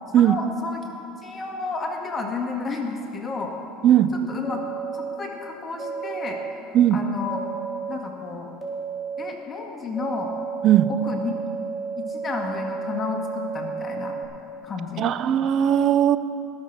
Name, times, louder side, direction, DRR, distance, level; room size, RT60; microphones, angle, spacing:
voice 1, 0.2-0.8 1.2-3.5 4.3-4.6 4.9-6.4 6.9-7.4 7.9-8.5 9.2-10.3 10.9-11.3 12.0-14.1 14.6-15.1, left 4 dB, 30° left, 2 dB, 1.6 m, -31 dB
voice 2, 3.8-4.1 6.7-7.0 10.6-10.9 15.0-16.2, right 11 dB, 50° right, 13 dB, 0.6 m, -18 dB
sound 1, 4.4-5.2 5.8-6.5 7.3-8.0 8.6-9.3 10.0-14.3, right 5 dB, 5° right, 3.6 m, -32 dB
19.5 x 6.7 x 5.9 m, 3.0 s
hypercardioid pair, 85°, 0 cm